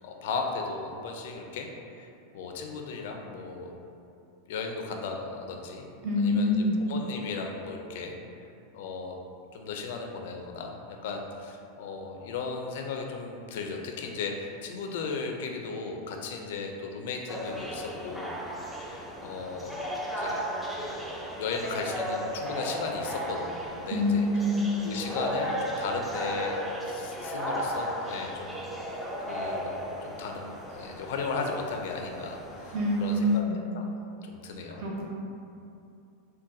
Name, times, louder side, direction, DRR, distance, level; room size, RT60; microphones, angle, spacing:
voice 1, 0.0-1.7 1.9-3.8 4.5-5.8 6.1-8.2 8.7-9.2 9.5-10.7 11.0-18.4 18.8-19.8 20.2-20.5 20.7-21.0 21.4-24.3 24.8-26.6 26.9-28.6 29.2-35.0, left 4 dB, 70° left, 2 dB, 0.4 m, -36 dB
voice 2, 6.0-6.8 23.9-24.7 32.7-33.6 34.8-35.0, left 1 dB, 55° right, -4 dB, 0.8 m, -25 dB
sound 1, 17.3-33.4, equal, ahead, 0.3 m, -35 dB
3.9 x 2.2 x 2.6 m, 2.6 s
supercardioid pair, 135°, 0 cm